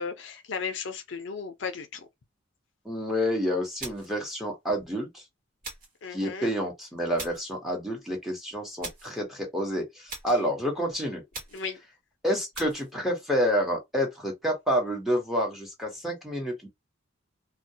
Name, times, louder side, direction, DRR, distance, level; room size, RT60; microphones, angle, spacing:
voice 1, 0.0-2.1 6.0-6.5 11.5-11.8, left 5 dB, 70° left, 0.5 m, -35 dB
voice 2, 2.8-5.2 6.1-11.2 12.2-16.7, equal, ahead, 0.9 m, -29 dB
sound 1, 3.8-4.2 5.6-6.0 7.2-7.5 8.8-9.2 10.1-10.5 11.3-11.8 12.5-12.9, right 2 dB, 45° right, 1.1 m, -41 dB
2.3 x 2.1 x 2.7 m
head